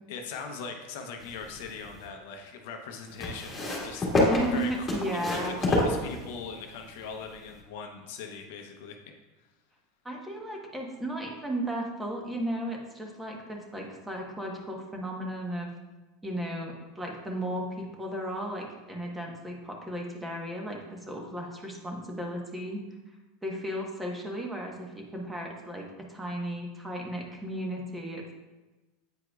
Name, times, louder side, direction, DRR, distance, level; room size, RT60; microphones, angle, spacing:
voice 1, 0.1-4.1 4.5-4.9 5.3-9.0, left 5 dB, 70° left, 4 dB, 0.7 m, -40 dB
sound 1, 1.2-2.1 3.2-6.6 7.5-7.6, left 1 dB, 20° left, 1.8 m, -28 dB
voice 2, 4.1-5.6 10.0-15.7 16.2-23.1 23.4-28.3, right 1 dB, 10° right, 0 dB, 1.1 m, -35 dB
8.6 x 4.7 x 2.4 m, 1.1 s
hypercardioid pair, 105°, 0 cm